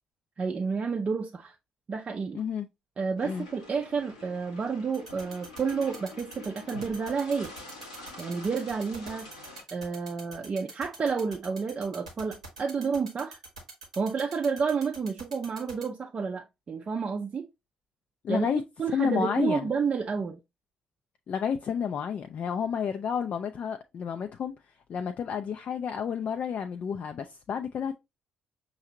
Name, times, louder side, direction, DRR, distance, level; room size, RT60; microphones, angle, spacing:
voice 1, 0.4-1.5 1.9-2.4 3.0-7.5 8.2-9.3 9.7-13.4 14.0-17.5 18.3-18.5 18.8-20.4, right 5 dB, 35° right, 0.5 m, -30 dB
voice 2, 2.3-2.7 3.2-3.5 18.2-18.6 18.9-19.7 21.3-24.5 24.9-27.9, left 7 dB, 45° left, 0.3 m, -30 dB
sound 1, 3.2-9.6, left 3 dB, 85° left, 0.8 m, -46 dB
sound 2, 4.9-15.8, right 4 dB, 85° right, 0.9 m, -44 dB
5.6 x 2.6 x 2.7 m
figure-of-eight pair, 45°, 3 cm